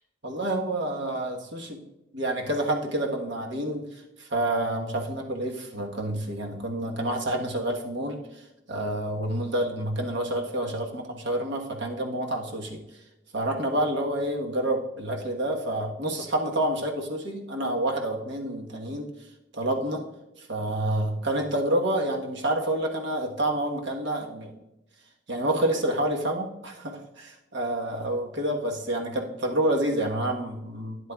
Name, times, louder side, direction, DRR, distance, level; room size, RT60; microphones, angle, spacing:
voice 1, 0.2-1.8 2.1-12.8 13.3-19.1 19.5-20.0 20.4-24.5 25.3-31.0, right 1 dB, 60° right, 1 dB, 1.2 m, -28 dB
12.0 x 9.4 x 2.3 m, 0.93 s
head